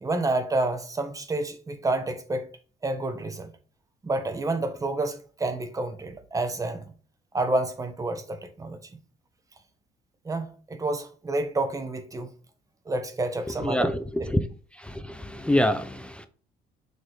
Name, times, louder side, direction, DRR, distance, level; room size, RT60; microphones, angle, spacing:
voice 1, 0.0-2.5 2.8-3.5 4.0-6.9 7.3-8.8 10.2-12.3 12.9-14.3, right 2 dB, 20° right, 0.9 m, -29 dB
voice 2, 14.8-16.3, left 1 dB, 5° left, 0.5 m, -25 dB
6.5 x 3.0 x 5.0 m
cardioid pair, 110°, 17 cm